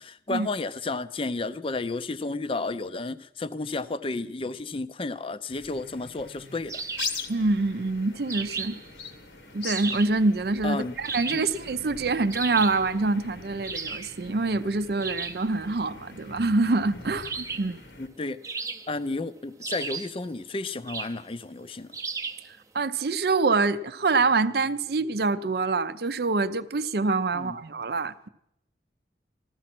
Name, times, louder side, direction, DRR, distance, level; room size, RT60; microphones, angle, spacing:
voice 1, 0.0-6.8 10.6-10.9 11.3-11.5 18.0-21.9 27.3-27.6, left 3 dB, 30° left, 0.5 m, -32 dB
sound 1, 5.5-18.1, left 4 dB, 80° left, 1.4 m, -42 dB
sound 2, 6.7-7.3 8.3-8.9 9.7-10.2 11.0-11.6 12.3-12.9 13.6-14.1 15.0-15.5 17.2-17.8 18.4-19.1 19.6-20.2 20.9-21.2 21.9-22.5, right 4 dB, 15° right, 0.6 m, -35 dB
voice 2, 7.3-8.8 9.5-17.8 22.7-28.3, right 3 dB, 60° right, 0.5 m, -25 dB
15.0 x 13.0 x 6.0 m
head